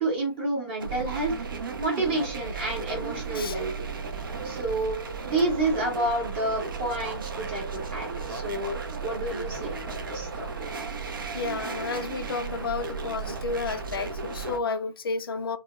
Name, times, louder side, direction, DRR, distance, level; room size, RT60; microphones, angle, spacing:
voice 1, 0.0-1.3 1.8-3.9 4.4-5.0 5.2-10.5 10.7-10.8, right 2 dB, 25° right, 0.8 m, -29 dB
sound 1, 0.8-14.6, right 5 dB, 50° right, 0.6 m, -34 dB
voice 2, 11.3-15.6, left 4 dB, 55° left, 0.4 m, -31 dB
2.3 x 2.0 x 2.9 m
figure-of-eight pair, 150°, 14 cm